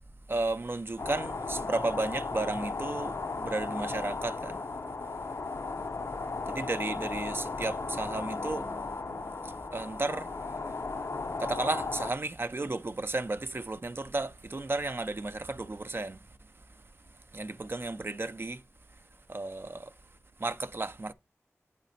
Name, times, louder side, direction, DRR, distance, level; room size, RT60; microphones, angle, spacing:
voice 1, 0.3-4.6 6.5-9.0 9.4-10.3 11.4-16.2 17.3-18.6 19.3-19.9 20.4-21.1, right 2 dB, 45° right, 0.6 m, -33 dB
sound 1, 1.0-12.1, left 3 dB, 65° left, 0.7 m, -36 dB
9.1 x 4.1 x 4.2 m
cardioid pair, 45°, 5 cm